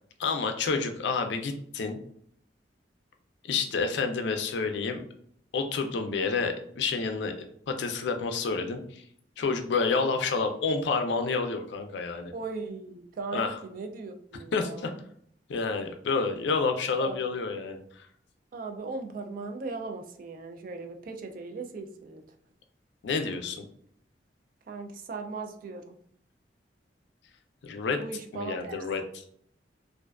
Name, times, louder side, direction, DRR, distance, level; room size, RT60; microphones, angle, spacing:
voice 1, 0.2-2.0 3.5-5.0 5.5-7.3 7.7-9.0 9.4-12.3 13.3-13.6 14.5-14.9 15.5-18.1 23.0-23.7 27.6-28.0 28.3-29.0, left 4 dB, 80° left, 6 dB, 0.4 m, -29 dB
voice 2, 12.3-15.0 17.0-17.3 18.5-22.2 24.7-26.0 28.0-28.8, right 4 dB, 50° right, 6 dB, 0.3 m, -38 dB
2.4 x 2.2 x 2.3 m, 0.65 s
head